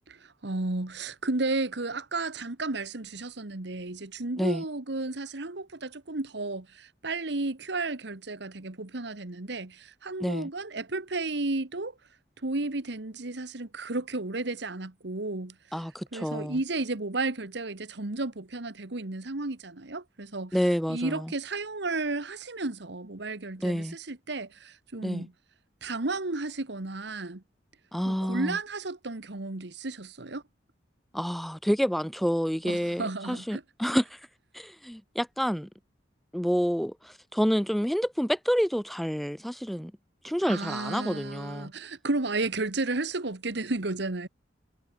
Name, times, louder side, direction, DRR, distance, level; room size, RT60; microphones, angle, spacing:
voice 1, 0.1-12.0 12.4-15.6 16.1-20.6 20.9-25.3 25.8-27.4 28.0-30.4 32.7-33.6 40.4-44.3, right 2 dB, 70° right, 1.5 m, -33 dB
voice 2, 15.7-16.6 20.5-21.3 23.6-24.0 25.0-25.3 27.9-28.6 31.1-34.2 34.5-35.7 36.3-39.9 40.2-41.7, equal, ahead, 0.4 m, -28 dB
head